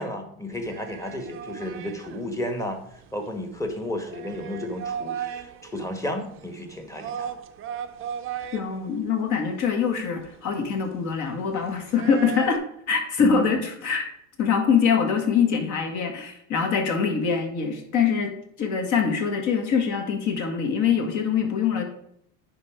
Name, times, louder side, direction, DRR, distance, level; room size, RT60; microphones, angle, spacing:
voice 1, 0.0-2.8 3.1-7.4 13.2-13.5, left 1 dB, 10° left, 4 dB, 1.2 m, -32 dB
sound 1, 0.5-12.6, right 8 dB, 35° right, 0.6 m, -38 dB
voice 2, 8.5-12.6 12.9-14.1 14.4-21.8, left 6 dB, 50° left, 4 dB, 1.8 m, -24 dB
9.6 x 3.4 x 5.0 m, 0.72 s
supercardioid pair, 125°, 39 cm